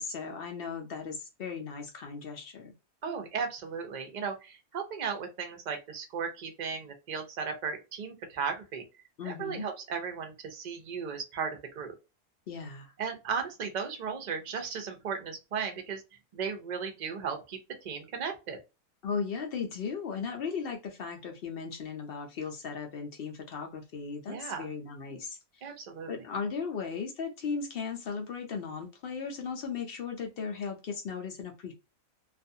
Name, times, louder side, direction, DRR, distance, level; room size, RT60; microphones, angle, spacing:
voice 1, 0.0-2.7 9.2-9.6 12.5-12.9 19.0-25.7 26.1-31.7, left 5 dB, 65° left, 0.5 m, -37 dB
voice 2, 3.0-8.8 9.2-11.9 13.0-16.0 16.3-18.6 24.3-24.7 25.6-26.1, right 6 dB, 50° right, 0.5 m, -36 dB
2.5 x 2.3 x 2.6 m
omnidirectional pair, 1.6 m